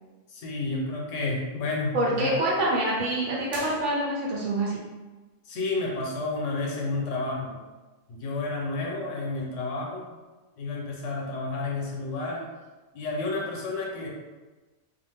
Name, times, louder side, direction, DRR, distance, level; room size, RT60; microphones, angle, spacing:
voice 1, 0.3-2.4 5.4-7.6 8.1-10.1 10.6-12.5 12.9-14.1, left 3 dB, 80° left, -2 dB, 1.0 m, -31 dB
voice 2, 1.9-4.8, right 1 dB, 80° right, -5 dB, 1.2 m, -26 dB
sound 1, 3.5-4.5, right 1 dB, 55° right, 0.5 m, -42 dB
2.4 x 2.4 x 3.3 m, 1.2 s
omnidirectional pair, 1.2 m